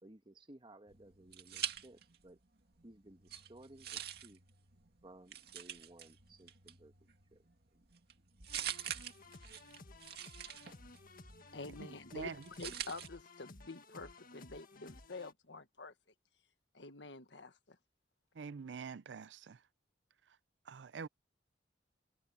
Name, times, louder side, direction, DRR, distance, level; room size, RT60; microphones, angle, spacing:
voice 1, 0.0-2.4 2.8-4.4 5.0-7.4 7.7-7.8, right 2 dB, 30° right, 1.6 m, -58 dB
sound 1, 0.9-2.4 2.7-13.1, right 10 dB, 60° right, 2.2 m, -46 dB
sound 2, 8.5-15.3, left 2 dB, 55° left, 1.8 m, -56 dB
voice 2, 11.5-15.9 16.7-17.8, left 3 dB, 85° left, 1.7 m, -48 dB
voice 3, 18.4-19.6 20.7-21.1, right 5 dB, 85° right, 0.5 m, -45 dB
head